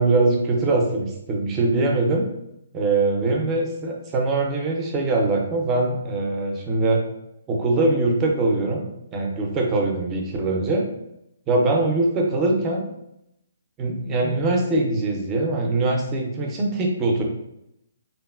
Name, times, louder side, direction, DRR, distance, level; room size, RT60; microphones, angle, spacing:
voice 1, 0.0-2.3 2.7-7.0 7.5-8.9 9.1-10.9 11.5-12.8 13.8-17.2, right 2 dB, 15° right, 0 dB, 0.4 m, -22 dB
3.0 x 2.5 x 2.3 m, 0.82 s
hypercardioid pair, 165°, 0 cm